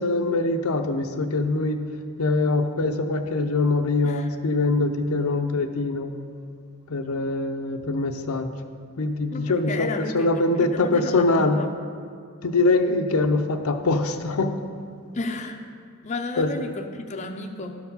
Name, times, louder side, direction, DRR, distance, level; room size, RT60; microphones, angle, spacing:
voice 1, 0.0-1.8 2.2-6.1 6.9-8.5 9.0-11.6 12.4-14.6 16.4-16.6, left 2 dB, 90° left, 6 dB, 0.6 m, -23 dB
voice 2, 9.3-10.5 10.7-11.6 15.1-15.6 16.0-17.8, left 3 dB, 35° left, 4 dB, 0.5 m, -33 dB
12.0 x 4.6 x 5.5 m, 2.2 s
head